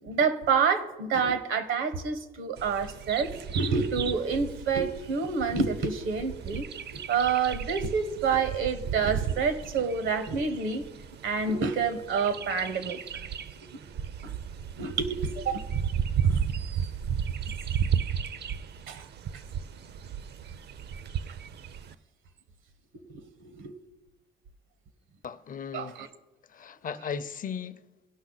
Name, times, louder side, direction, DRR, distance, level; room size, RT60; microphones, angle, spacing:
voice 1, 0.0-6.6 6.9-10.8 11.2-13.2 13.7-13.8 14.2-14.3 14.8-15.7 16.2-16.5 18.9-19.1 23.1-23.7 25.7-26.1, right 5 dB, 80° right, 1.0 m, -28 dB
Bird vocalization bird call bird song, 2.6-21.9, right 8 dB, 55° right, 0.5 m, -34 dB
voice 2, 25.2-26.0 26.5-27.8, left 7 dB, 45° left, 0.6 m, -36 dB
17.0 x 5.8 x 3.9 m
cardioid pair, 90°, 20 cm